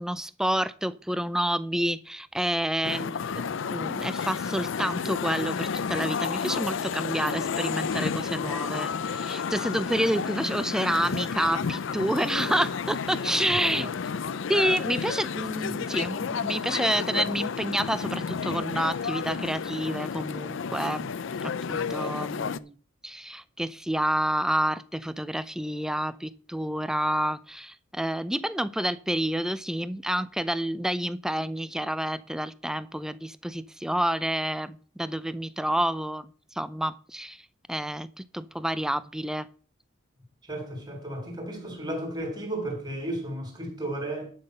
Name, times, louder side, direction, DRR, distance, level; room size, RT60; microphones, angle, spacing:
voice 1, 0.0-3.4 3.7-13.9 14.5-21.1 21.4-22.7 23.0-37.4 37.7-39.5, right 1 dB, 5° right, 0.4 m, -29 dB
sound 1, 2.8-22.6, left 6 dB, 65° left, 0.5 m, -31 dB
voice 2, 40.5-44.3, right 1 dB, 20° right, 3.6 m, -34 dB
11.5 x 5.8 x 6.5 m
head